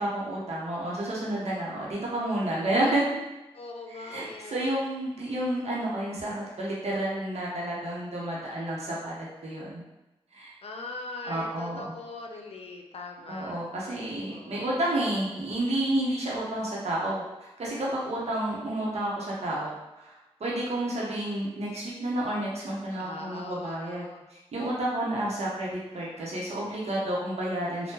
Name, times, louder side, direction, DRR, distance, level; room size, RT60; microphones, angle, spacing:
voice 1, 0.0-3.0 3.9-9.8 10.3-10.5 11.2-11.9 13.3-17.2 17.6-24.1 24.5-27.9, right 1 dB, 80° right, -5 dB, 0.8 m, -30 dB
voice 2, 3.5-4.8 10.6-13.6 14.2-14.6 23.0-24.2, left 3 dB, 65° left, 2 dB, 0.5 m, -41 dB
2.8 x 2.1 x 3.6 m, 1.0 s
cardioid pair, 60°, 11 cm